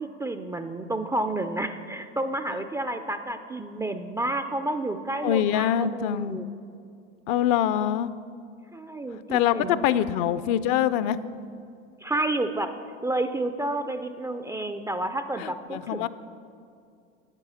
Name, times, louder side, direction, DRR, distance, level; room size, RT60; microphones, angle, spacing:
voice 1, 0.0-6.5 8.7-10.1 12.0-12.7 13.0-16.1, right 2 dB, 10° right, 8 dB, 0.3 m, -30 dB
voice 2, 5.2-6.4 7.3-8.1 9.3-11.2 15.4-16.1, left 10 dB, 55° left, 15 dB, 0.5 m, -24 dB
9.3 x 9.1 x 5.6 m, 2.4 s
hypercardioid pair, 80°, 34 cm